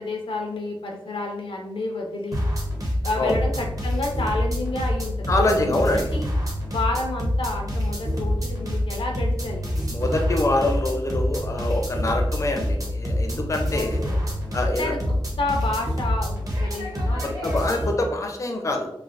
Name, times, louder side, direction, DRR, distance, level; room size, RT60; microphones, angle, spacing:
voice 1, 0.0-2.5 3.0-6.3 6.7-9.7 13.7-14.2 14.8-17.8, left 2 dB, 90° left, 1 dB, 0.5 m, -30 dB
sound 1, 2.3-17.9, equal, 40° right, 0.7 m, -26 dB
voice 2, 5.3-6.1 9.9-14.0 14.5-14.9 17.4-18.9, left 2 dB, 35° left, 2 dB, 0.4 m, -25 dB
3.2 x 2.1 x 2.4 m, 0.82 s
wide cardioid pair, 100°, 9 cm